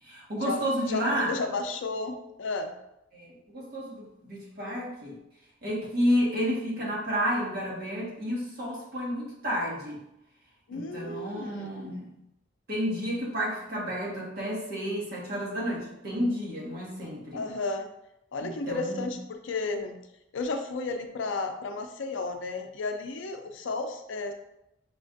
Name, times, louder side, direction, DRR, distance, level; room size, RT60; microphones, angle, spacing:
voice 1, 0.0-1.4 3.1-5.2 5.6-10.0 10.7-12.1 12.7-17.4 18.4-19.2, equal, 55° right, -5 dB, 1.3 m, -31 dB
voice 2, 0.9-2.7 10.7-11.7 17.3-17.9 18.3-20.0 20.3-24.3, left 3 dB, 70° left, 5 dB, 0.5 m, -33 dB
6.0 x 2.5 x 2.5 m, 0.85 s
head